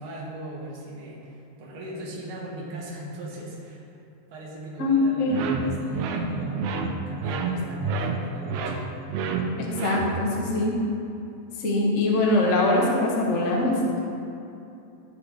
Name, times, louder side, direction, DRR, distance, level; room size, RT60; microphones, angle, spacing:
voice 1, 0.0-3.9 4.3-8.8, right 1 dB, 50° right, -4 dB, 2.3 m, -39 dB
voice 2, 4.8-5.4 9.6-10.7 11.6-14.0, left 2 dB, 75° left, -2 dB, 0.6 m, -23 dB
sound 1, 5.3-10.4, right 4 dB, 80° right, 2.1 m, -29 dB
13.5 x 4.8 x 4.9 m, 2.7 s
omnidirectional pair, 3.4 m